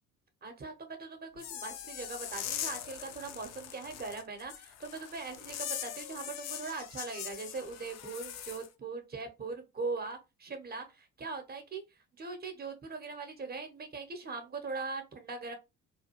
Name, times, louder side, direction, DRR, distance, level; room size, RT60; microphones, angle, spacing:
voice 1, 0.4-11.8 12.2-15.5, right 4 dB, 20° right, 0.8 m, -40 dB
sound 1, 1.4-8.7, left 10 dB, 40° left, 0.4 m, -41 dB
2.4 x 2.3 x 2.9 m
figure-of-eight pair, 50°, 46 cm